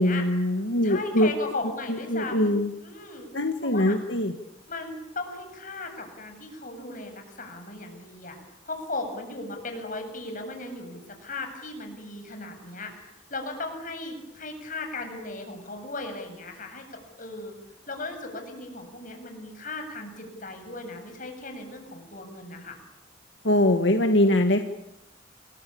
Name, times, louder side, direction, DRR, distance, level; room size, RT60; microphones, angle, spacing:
voice 1, 0.0-1.3 1.9-2.7 3.3-4.3 23.4-24.6, left 1 dB, 90° left, 6 dB, 1.9 m, -22 dB
voice 2, 0.8-2.5 2.8-3.3 3.6-4.0 4.7-8.4 8.7-12.9 13.3-17.5 17.9-22.8, left 2 dB, 45° left, 5 dB, 7.6 m, -37 dB
29.0 x 22.5 x 8.8 m, 0.86 s
head